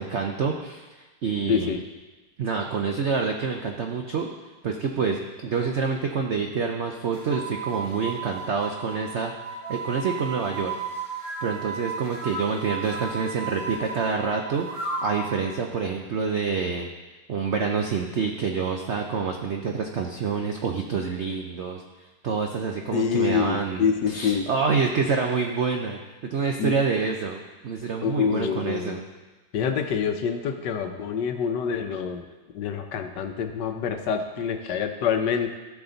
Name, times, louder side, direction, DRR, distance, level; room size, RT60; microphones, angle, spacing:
voice 1, 0.0-1.8 2.4-4.3 4.6-9.3 9.7-10.7 11.4-16.9 17.3-21.8 22.2-29.1, right 5 dB, 70° right, 2 dB, 0.6 m, -27 dB
voice 2, 1.5-1.8 22.9-24.5 26.6-26.7 28.0-29.0 29.5-32.3 32.5-35.5, left 7 dB, 70° left, 6 dB, 1.3 m, -26 dB
sound 1, 7.1-15.3, right 4 dB, 50° right, 3.1 m, -34 dB
15.5 x 6.1 x 4.0 m, 1.2 s
omnidirectional pair, 2.1 m